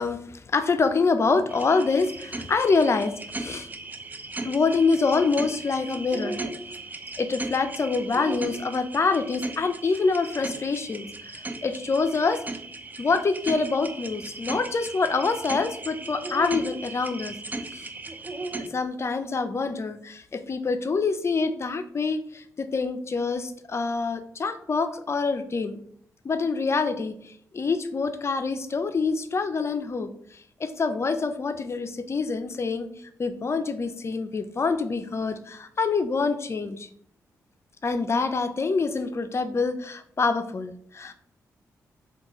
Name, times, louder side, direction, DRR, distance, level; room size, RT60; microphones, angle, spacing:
voice 1, 0.0-3.7 4.4-6.4 7.2-11.1 11.3-12.4 13.0-17.4 17.7-17.9 18.6-25.8 26.2-32.9 33.2-36.9 37.8-41.1, left 4 dB, 40° left, 10 dB, 0.4 m, -26 dB
sound 1, 1.5-18.7, right 2 dB, 25° right, 0.4 m, -37 dB
3.7 x 2.2 x 2.9 m, 0.64 s
supercardioid pair, 45°, 7 cm